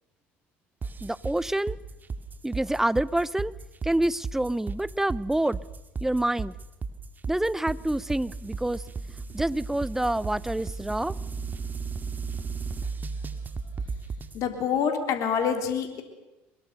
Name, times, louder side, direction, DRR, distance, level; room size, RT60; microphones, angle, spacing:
sound 1, 0.8-14.4, right 4 dB, 30° right, 2.1 m, -35 dB
voice 1, 1.0-1.8 2.4-3.5 3.8-5.6 6.0-6.5 7.3-8.8 9.3-11.2, right 1 dB, 5° right, 21 dB, 0.6 m, -27 dB
voice 2, 14.3-16.0, left 7 dB, 60° left, 6 dB, 3.5 m, -26 dB
23.5 x 21.0 x 6.8 m, 1.1 s
hypercardioid pair, 80°, 6 cm